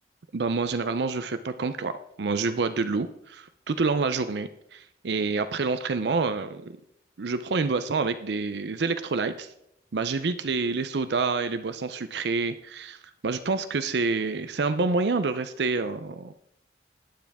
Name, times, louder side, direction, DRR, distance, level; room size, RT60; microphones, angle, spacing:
voice 1, 0.3-1.9 2.2-6.8 7.2-9.5 9.9-13.0 13.2-16.3, right 4 dB, 70° right, 10 dB, 0.5 m, -27 dB
12.0 x 9.4 x 3.5 m, 0.74 s
head